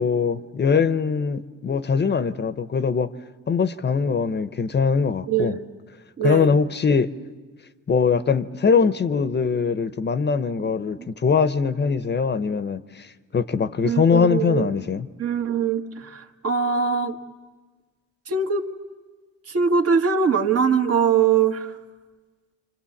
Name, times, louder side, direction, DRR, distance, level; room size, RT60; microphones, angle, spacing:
voice 1, 0.0-3.1 3.5-5.6 6.2-7.1 7.9-15.1, left 5 dB, 35° left, 0.8 m, -22 dB
voice 2, 5.3-5.7 6.2-6.5 10.6-11.1 13.8-14.7 15.2-17.2 18.3-18.6 19.5-21.7, right 6 dB, 50° right, 1.6 m, -22 dB
27.0 x 25.0 x 7.2 m
cardioid pair, 90°, 30 cm